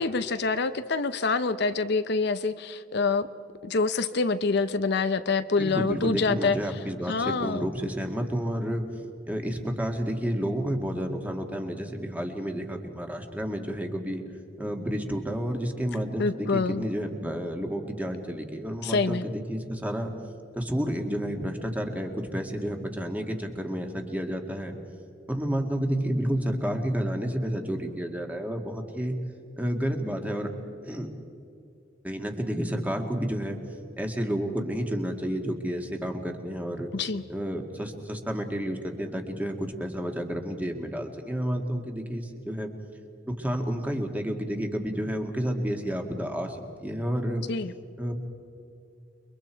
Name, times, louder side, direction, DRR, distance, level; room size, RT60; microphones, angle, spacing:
voice 1, 0.0-3.3 3.6-6.6 7.1-7.7 16.2-16.9 18.8-19.3 36.9-37.2 47.5-47.7, left 4 dB, 60° left, 11 dB, 0.7 m, -26 dB
voice 2, 5.6-8.8 9.3-14.2 14.6-20.1 20.6-24.8 25.3-29.2 29.6-30.5 30.8-31.1 32.0-33.6 34.0-36.9 37.3-42.7 43.3-47.5 48.0-48.1, equal, 10° right, 3 dB, 2.0 m, -30 dB
29.5 x 23.0 x 4.6 m, 2.5 s
head